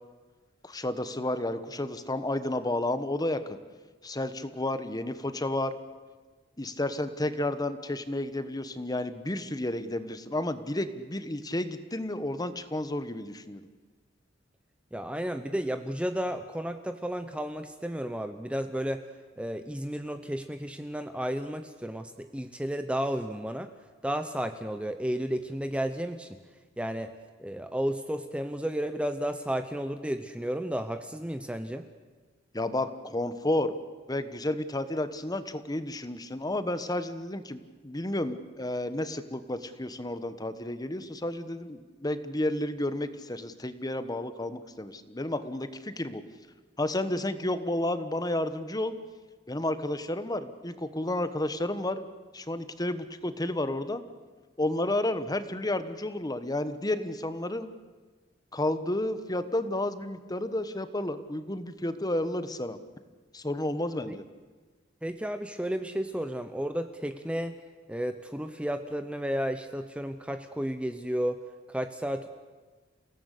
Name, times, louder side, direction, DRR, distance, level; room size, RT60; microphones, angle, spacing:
voice 1, 0.6-3.4 4.0-5.7 6.6-13.6 32.5-33.7 34.1-46.2 46.8-48.9 49.5-52.1 52.3-54.0 54.6-57.7 58.5-62.8 63.3-64.2, left 1 dB, 20° left, 11 dB, 1.2 m, -31 dB
voice 2, 14.9-19.1 19.4-23.7 24.0-26.3 26.8-27.1 27.4-31.9 64.0-64.2 65.0-67.6 67.9-71.4 71.7-72.3, equal, 5° right, 8 dB, 0.8 m, -32 dB
28.5 x 17.5 x 8.4 m, 1.4 s
head